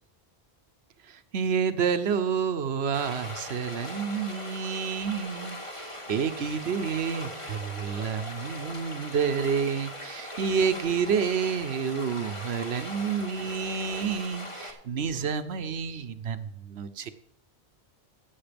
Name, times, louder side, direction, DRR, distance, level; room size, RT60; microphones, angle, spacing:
voice 1, 1.1-17.1, right 6 dB, 75° right, 11 dB, 1.1 m, -29 dB
Stream, 2.9-14.7, left 1 dB, 30° left, 1.8 m, -40 dB
16.0 x 7.7 x 5.2 m, 0.69 s
omnidirectional pair, 1.1 m